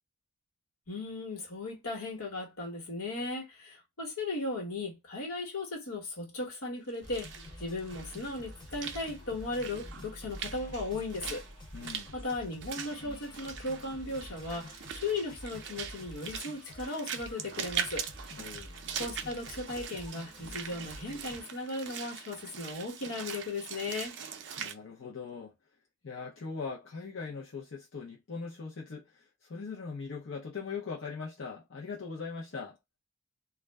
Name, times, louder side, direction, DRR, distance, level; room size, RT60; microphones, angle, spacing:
voice 1, 0.9-7.3 7.6-11.4 12.1-18.1 19.0-24.2, left 2 dB, 90° left, 1.2 m, -37 dB
Walk footsteps / Splash splatter, 6.9-24.7, right 8 dB, 55° right, 0.4 m, -42 dB
sound 1, 7.0-21.4, left 1 dB, 20° left, 0.7 m, -48 dB
voice 2, 11.7-12.1 18.4-18.8 24.6-25.5 26.0-32.8, left 5 dB, 65° left, 0.6 m, -40 dB
2.3 x 2.1 x 3.3 m
head